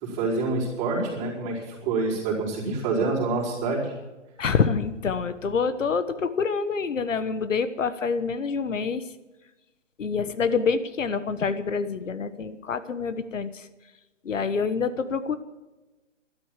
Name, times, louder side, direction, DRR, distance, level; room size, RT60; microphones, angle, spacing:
voice 1, 0.0-3.9, right 3 dB, 20° right, -5 dB, 4.5 m, -27 dB
voice 2, 4.4-9.1 10.0-13.7 14.2-15.4, left 5 dB, 85° left, 12 dB, 1.4 m, -26 dB
13.0 x 12.0 x 7.4 m, 1.1 s
hypercardioid pair, 165°, 37 cm